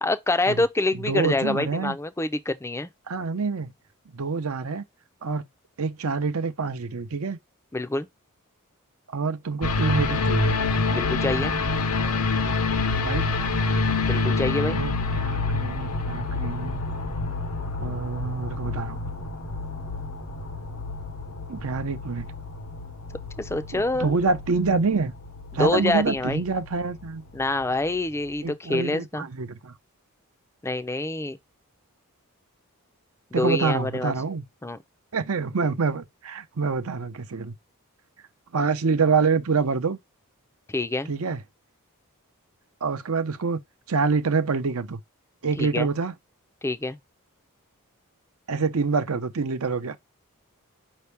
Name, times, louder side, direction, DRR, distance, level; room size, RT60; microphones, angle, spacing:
voice 1, 0.0-2.9 7.7-8.1 10.9-11.5 14.1-14.8 23.4-24.2 25.5-26.4 27.3-29.3 30.6-31.4 33.4-34.1 34.6-34.8 40.7-41.1 45.6-45.9 46.6-47.0, left 2 dB, 10° left, 0.5 m, -26 dB
voice 2, 0.9-2.0 3.1-3.7 4.1-4.8 5.2-5.5 5.8-7.4 9.1-10.6 13.0-13.2 14.4-16.8 17.7-19.0 21.5-22.3 23.7-25.1 25.5-27.3 28.4-29.7 33.3-34.4 35.1-37.5 38.5-40.0 41.1-41.4 42.8-43.6 43.9-45.0 45.4-46.1 48.5-50.0, right 4 dB, 65° right, 0.7 m, -26 dB
sound 1, 9.6-28.0 28.4-28.5, left 3 dB, 75° left, 0.9 m, -28 dB
5.3 x 2.8 x 3.3 m
head